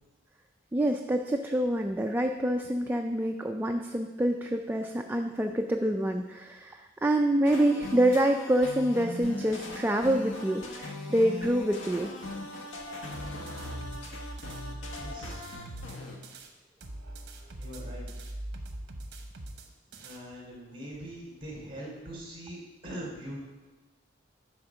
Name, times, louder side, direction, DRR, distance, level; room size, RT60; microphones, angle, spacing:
voice 1, 0.7-12.2, right 1 dB, 10° right, 3 dB, 0.3 m, -27 dB
sound 1, 7.5-16.2, left 2 dB, 75° left, 1.2 m, -40 dB
sound 2, 13.1-16.5 16.8-20.2, right 1 dB, 55° right, 0.9 m, -42 dB
voice 2, 14.9-15.4 17.6-18.3 20.0-23.4, right 1 dB, 25° right, -3 dB, 2.7 m, -42 dB
9.8 x 4.4 x 5.9 m, 1.3 s
head